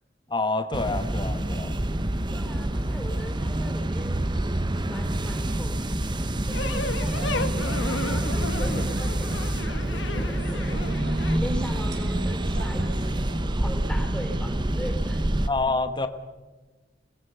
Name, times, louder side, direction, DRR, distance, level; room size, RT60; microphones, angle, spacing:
voice 1, 0.3-1.9 15.5-16.1, left 3 dB, 25° left, 9 dB, 1.1 m, -27 dB
sound 1, 0.7-15.5, right 1 dB, 25° right, 0.8 m, -27 dB
voice 2, 2.3-4.2 4.8-15.3, equal, 5° left, 3 dB, 3.7 m, -40 dB
sound 2, 6.5-11.4, left 3 dB, 85° left, 1.4 m, -34 dB
sound 3, 7.2-13.1, equal, 70° right, 4.1 m, -39 dB
27.0 x 19.0 x 5.7 m, 1.2 s
head